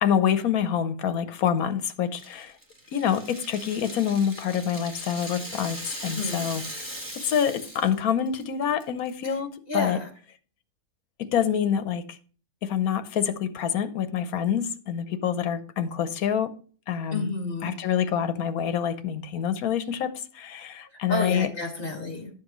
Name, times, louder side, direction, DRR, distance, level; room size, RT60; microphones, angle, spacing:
voice 1, 0.0-2.5 2.9-6.9 7.2-10.0 11.2-12.2 12.6-16.5 16.9-17.3 17.6-21.5, left 8 dB, 80° left, 1.2 m, -26 dB
Rattle (instrument), 2.2-8.0 8.3-8.4 8.8-9.3, equal, 15° right, 1.6 m, -39 dB
voice 2, 6.1-6.5 9.7-10.1 17.1-17.7 21.1-22.3, left 2 dB, 40° left, 2.3 m, -31 dB
11.5 x 7.2 x 3.1 m
omnidirectional pair, 1.5 m